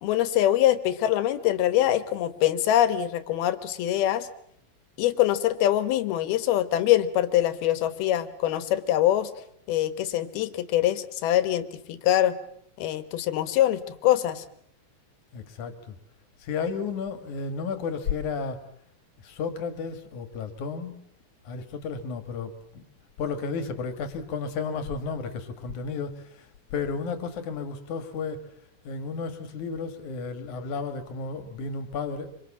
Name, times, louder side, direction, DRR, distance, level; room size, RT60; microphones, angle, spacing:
voice 1, 0.0-4.3 5.0-9.3 9.7-12.4 12.8-14.4, left 12 dB, 90° left, 12 dB, 3.1 m, -24 dB
voice 2, 15.3-16.0 16.4-18.6 19.2-21.0 21.4-22.8 23.2-28.4 28.8-32.3, left 5 dB, 60° left, 10 dB, 2.7 m, -33 dB
25.5 x 25.0 x 7.2 m, 0.70 s
omnidirectional pair, 4.2 m